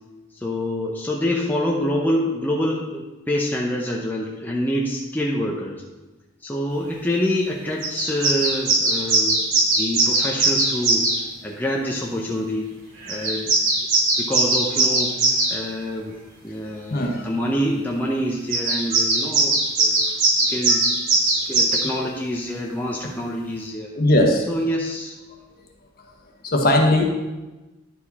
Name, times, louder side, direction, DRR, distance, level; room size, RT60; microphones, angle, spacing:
voice 1, 0.3-5.8 6.4-9.4 9.8-11.0 11.4-12.7 13.1-13.5 14.2-15.1 15.5-16.2 16.4-20.8 21.2-23.9 24.5-25.1, equal, 10° left, -3 dB, 0.7 m, -26 dB
sound 1, 7.3-7.4 7.8-11.2 13.0-15.6 18.5-21.9, right 3 dB, 80° right, 2.1 m, -20 dB
voice 2, 16.9-17.2 20.7-20.8 24.0-24.4 26.4-27.0, left 1 dB, 45° left, 1 dB, 1.2 m, -18 dB
11.0 x 4.8 x 4.2 m, 1.1 s
head